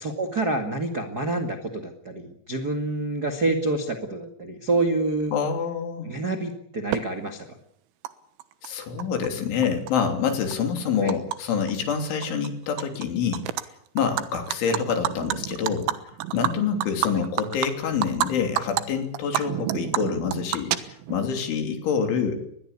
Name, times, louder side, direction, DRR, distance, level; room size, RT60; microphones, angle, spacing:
voice 1, 0.0-5.3 6.0-7.4 11.0-11.1 14.7-14.8 17.1-17.2, right 2 dB, 50° right, 4 dB, 1.1 m, -27 dB
voice 2, 5.3-6.1 8.6-13.4 14.0-15.9 16.3-22.4, left 6 dB, 75° left, 5 dB, 5.6 m, -26 dB
Animal, 6.9-7.0 8.0-8.1 8.4-9.3 9.6-11.4 11.7-11.9 12.2-13.0 13.3-13.6 14.0-18.3 18.6-18.8 19.1-21.3, right 13 dB, 80° right, 3.7 m, -29 dB
24.0 x 21.0 x 8.5 m, 0.72 s
omnidirectional pair, 5.6 m